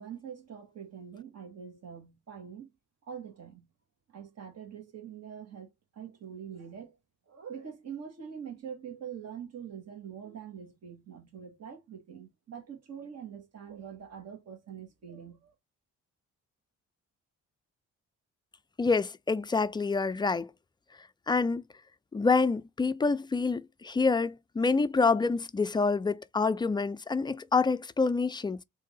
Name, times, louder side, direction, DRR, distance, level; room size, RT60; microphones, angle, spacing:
voice 1, 0.0-2.7 3.1-3.7 4.1-5.7 5.9-6.9 7.3-15.5, right 8 dB, 55° right, 1.6 m, -44 dB
voice 2, 18.8-20.5 21.3-21.6 22.1-28.6, left 4 dB, 15° left, 0.3 m, -27 dB
3.6 x 2.7 x 4.1 m
cardioid pair, 90°, 30 cm